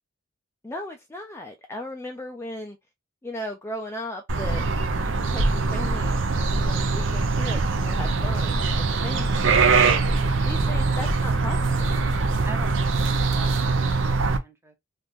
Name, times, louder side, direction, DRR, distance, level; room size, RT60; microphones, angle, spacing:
voice 1, 0.6-2.8 3.2-4.7 5.0-9.4 10.4-11.9, left 1 dB, 15° left, 0.3 m, -37 dB
sound 1, 4.3-14.4, right 3 dB, 65° right, 0.6 m, -23 dB
voice 2, 9.2-9.5 12.4-14.7, right 1 dB, 10° right, 0.7 m, -43 dB
3.4 x 2.5 x 2.5 m
head